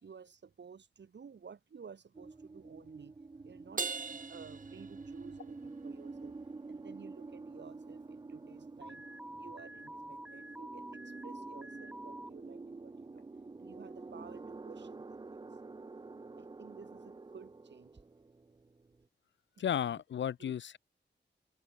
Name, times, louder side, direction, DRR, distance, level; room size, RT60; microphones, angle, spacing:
voice 1, 0.0-6.4 6.7-13.2 13.6-15.4 16.4-18.0 19.6-20.0 20.4-20.5, right 6 dB, 70° right, 3.4 m, -54 dB
sound 1, 2.1-19.0, right 3 dB, 25° right, 0.6 m, -48 dB
Crash cymbal, 3.8-5.5, right 5 dB, 45° right, 1.8 m, -40 dB
Alarm, 8.8-12.3, right 1 dB, 5° right, 1.9 m, -48 dB
voice 2, 19.6-20.8, left 9 dB, 80° left, 0.5 m, -34 dB
wide cardioid pair, 145°, 19 cm